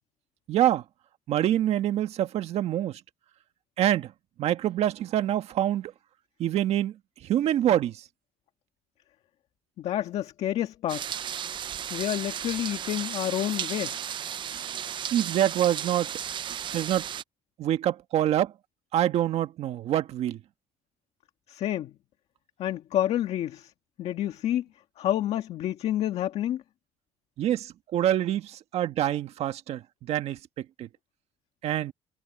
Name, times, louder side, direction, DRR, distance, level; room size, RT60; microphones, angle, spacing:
voice 1, 0.5-0.8 1.3-3.0 3.8-4.1 4.4-5.9 6.4-6.9 7.2-8.0 15.1-16.1 16.7-17.0 17.6-18.5 18.9-20.4 27.4-30.9 31.6-31.9, right 12 dB, 65° right, 1.7 m, -26 dB
voice 2, 9.8-11.2 11.9-14.2 21.5-21.9 22.6-23.7 24.0-24.6 25.0-26.6, left 12 dB, 65° left, 1.8 m, -29 dB
sound 1, 10.9-17.2, right 9 dB, 45° right, 0.6 m, -34 dB
cardioid pair, 115°, 12 cm